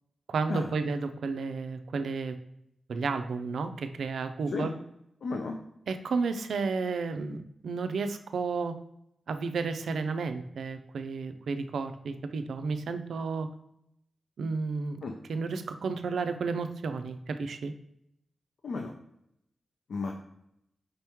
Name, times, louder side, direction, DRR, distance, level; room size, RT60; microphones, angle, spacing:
voice 1, 0.3-2.4 2.9-4.7 5.9-8.8 9.3-13.5 14.4-15.0 15.3-17.7, right 4 dB, 75° right, 8 dB, 0.4 m, -32 dB
voice 2, 5.2-5.6 15.0-15.1 18.6-18.9 19.9-20.1, left 3 dB, 60° left, 2 dB, 0.4 m, -33 dB
5.2 x 2.9 x 3.5 m, 0.78 s
wide cardioid pair, 165°, 0 cm